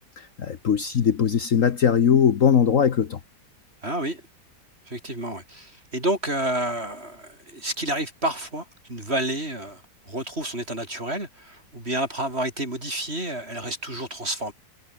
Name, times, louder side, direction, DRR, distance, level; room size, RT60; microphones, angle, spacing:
voice 1, 0.4-3.2, left 7 dB, 55° left, 1.4 m, -20 dB
voice 2, 3.8-4.2 4.9-14.5, right 1 dB, 35° right, 7.8 m, -30 dB
omnidirectional pair, 1.8 m